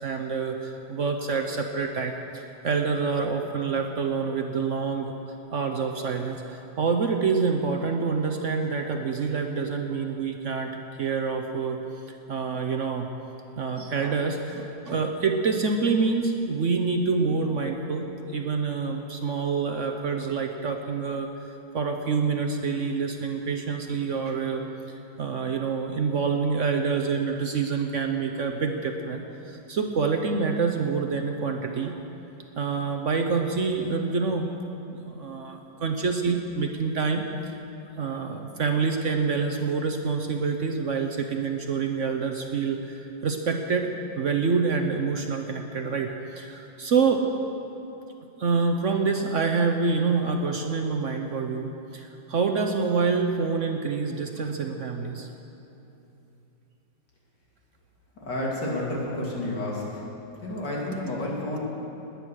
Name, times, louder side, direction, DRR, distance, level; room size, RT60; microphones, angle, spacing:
voice 1, 0.0-11.8 12.1-13.1 13.6-21.3 21.7-24.6 25.2-32.1 32.6-34.5 35.0-37.6 38.0-43.9 44.2-47.3 48.4-55.3, right 5 dB, 55° right, 4 dB, 1.0 m, -27 dB
voice 2, 58.2-60.0 60.4-61.6, left 1 dB, 65° left, -4 dB, 3.4 m, -30 dB
19.5 x 9.8 x 6.4 m, 2.9 s
omnidirectional pair, 2.0 m